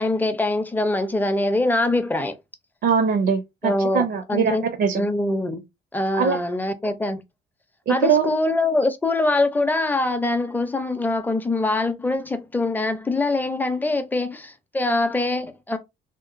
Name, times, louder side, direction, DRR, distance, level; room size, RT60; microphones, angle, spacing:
voice 1, 0.0-2.4 3.6-4.6 4.9-5.6 5.9-7.2 7.9-15.8, left 2 dB, 10° left, 0.5 m, -23 dB
voice 2, 2.8-5.0 6.1-6.4 7.9-8.3, right 6 dB, 60° right, 0.5 m, -22 dB
2.9 x 2.1 x 2.5 m
cardioid pair, 90°, 20 cm